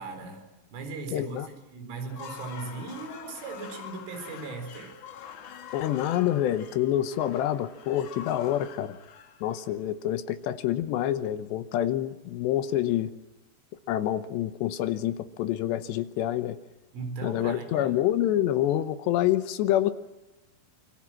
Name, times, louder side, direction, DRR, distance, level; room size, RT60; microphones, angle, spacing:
voice 1, 0.0-5.0 16.9-17.9, right 4 dB, 75° right, 6 dB, 6.6 m, -38 dB
voice 2, 1.1-1.5 5.7-9.0 9.4-13.1 13.9-16.6 17.2-19.9, left 12 dB, 75° left, 12 dB, 2.8 m, -27 dB
sound 1, 2.0-10.1, left 8 dB, 55° left, 2.4 m, -45 dB
26.0 x 24.5 x 7.6 m, 1.0 s
omnidirectional pair, 5.7 m